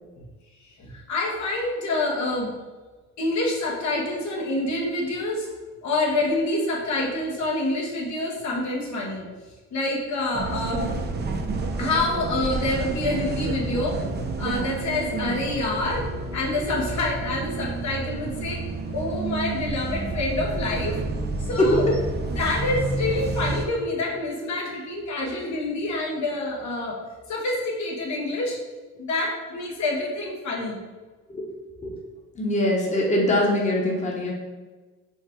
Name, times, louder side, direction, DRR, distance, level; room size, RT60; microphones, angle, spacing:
voice 1, 0.8-2.5 3.2-5.5 5.8-9.2 9.7-10.9 11.8-14.0 14.4-16.1 16.3-18.6 18.9-21.0 21.5-21.8 22.4-27.0 27.3-28.6 28.9-30.8, left 2 dB, 65° left, -2 dB, 1.1 m, -27 dB
sound 1, 10.3-23.6, right 3 dB, 35° right, 0.6 m, -30 dB
voice 2, 32.3-34.3, left 1 dB, 25° left, -2 dB, 1.0 m, -22 dB
4.6 x 2.4 x 4.4 m, 1.3 s
cardioid pair, 90°, 30 cm